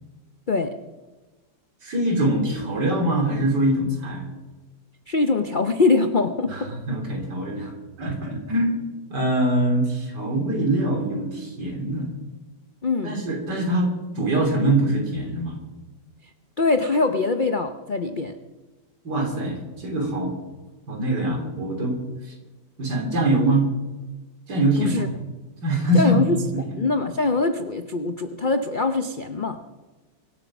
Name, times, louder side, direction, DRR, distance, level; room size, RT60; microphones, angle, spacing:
voice 1, 1.8-4.2 6.5-7.7 8.0-8.8 9.1-12.1 13.0-13.9 14.2-15.6 19.0-20.4 20.9-22.0 22.3-22.4 22.8-23.7 24.5-25.1 25.6-26.6, right 1 dB, 65° right, 2 dB, 3.7 m, -23 dB
voice 2, 5.1-6.7 12.8-13.2 16.6-18.4 24.8-25.1 25.9-26.4 26.8-29.6, left 3 dB, 70° left, 7 dB, 0.4 m, -23 dB
24.0 x 8.8 x 6.1 m, 1.2 s
omnidirectional pair, 2.0 m